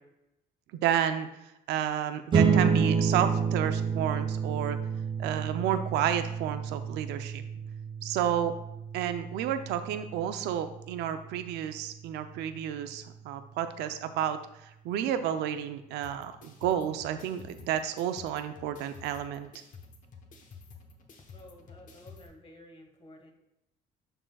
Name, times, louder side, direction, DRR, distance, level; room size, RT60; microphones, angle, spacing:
voice 1, 0.8-1.3 1.7-4.8 5.2-7.4 8.0-8.5 8.9-19.5, right 10 dB, 85° right, 9 dB, 0.5 m, -31 dB
sound 1, 2.3-13.1, right 6 dB, 30° right, 0.4 m, -30 dB
sound 2, 16.0-22.3, left 4 dB, 50° left, 1.0 m, -51 dB
voice 2, 21.3-23.3, left 1 dB, 35° left, 2 dB, 1.5 m, -52 dB
11.0 x 3.8 x 2.3 m, 0.87 s
cardioid pair, 110°, 17 cm